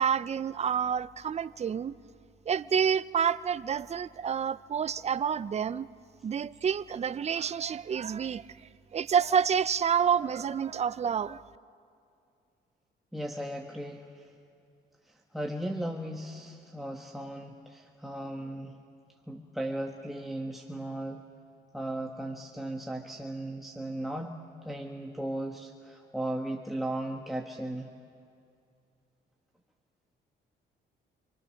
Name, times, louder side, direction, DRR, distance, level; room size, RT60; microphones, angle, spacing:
voice 1, 0.0-1.9 2.5-5.9 6.2-8.5 8.9-11.4, right 7 dB, 35° right, 16 dB, 0.5 m, -28 dB
voice 2, 13.1-14.3 15.0-18.8 19.3-21.2 21.7-24.4 24.6-27.9, right 1 dB, ahead, 1 dB, 1.3 m, -36 dB
27.0 x 24.0 x 6.5 m, 2.5 s
cardioid pair, 90°, 20 cm